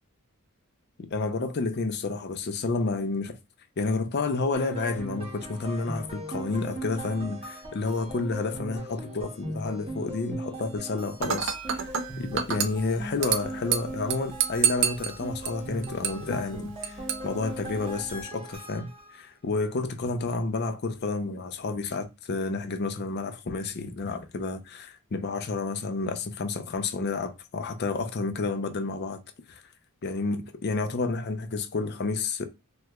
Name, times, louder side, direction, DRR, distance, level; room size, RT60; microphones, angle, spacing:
voice 1, 1.0-3.3 3.8-11.9 12.2-29.2 30.0-32.4, left 3 dB, 50° left, 0.4 m, -30 dB
sound 1, 4.5-19.2, right 1 dB, 25° right, 0.8 m, -39 dB
Dishes pots and pans / Glass, 11.2-18.2, right 8 dB, 55° right, 0.4 m, -31 dB
2.9 x 2.2 x 3.4 m
head